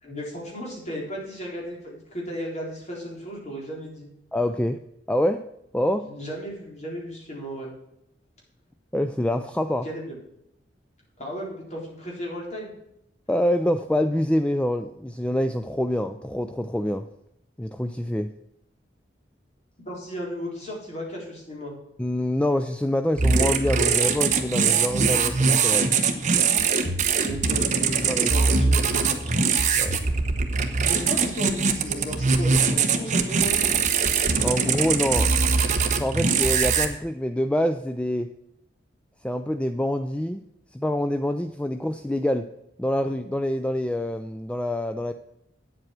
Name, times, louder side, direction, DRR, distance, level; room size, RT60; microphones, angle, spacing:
voice 1, 0.0-4.1 6.0-7.7 9.8-10.2 11.2-12.7 19.9-21.7 27.2-29.4 30.8-33.8, equal, 40° left, -3 dB, 4.0 m, -35 dB
voice 2, 4.3-4.8 5.1-5.5 5.7-6.1 8.9-9.9 13.3-17.1 17.6-18.3 22.0-25.9 28.1-28.3 29.8-30.0 34.4-35.3 36.0-38.3 39.2-40.4 40.7-42.5 42.8-45.1, left 1 dB, 5° left, 9 dB, 0.4 m, -26 dB
sound 1, 23.2-36.9, right 5 dB, 40° right, 1.1 m, -22 dB
9.0 x 7.9 x 5.9 m, 0.79 s
head